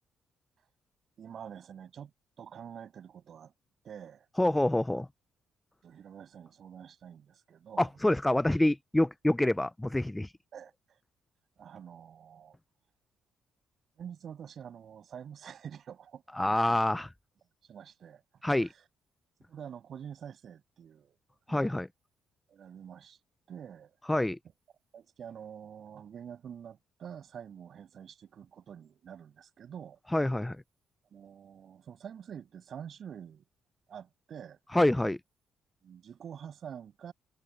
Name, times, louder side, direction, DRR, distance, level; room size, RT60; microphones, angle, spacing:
voice 1, 1.2-2.1 2.4-3.5 3.8-4.3 5.8-7.9 10.5-10.7 11.6-12.6 14.0-16.8 17.7-18.7 19.5-21.2 21.5-21.8 22.5-23.2 23.5-24.0 24.9-30.0 31.1-33.4 33.9-34.6 35.8-37.1, right 8 dB, 60° right, 7.1 m, -47 dB
voice 2, 4.4-5.1 7.8-10.3 16.4-17.1 18.4-18.7 21.5-21.9 24.1-24.4 30.1-30.6 34.7-35.2, left 1 dB, 10° left, 0.5 m, -26 dB
cardioid pair, 90°, 0 cm